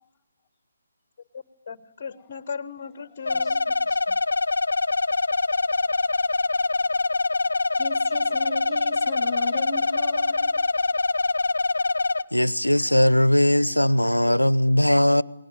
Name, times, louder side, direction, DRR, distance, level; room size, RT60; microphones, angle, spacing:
voice 1, 1.3-3.6, left 6 dB, 35° left, 1.3 m, -37 dB
sound 1, 3.3-12.2, left 3 dB, 60° left, 1.0 m, -24 dB
voice 2, 3.3-4.2 7.6-10.5, left 3 dB, 10° left, 2.6 m, -37 dB
voice 3, 12.3-15.2, left 1 dB, 85° left, 0.9 m, -19 dB
29.5 x 20.5 x 9.2 m
figure-of-eight pair, 145°, 0 cm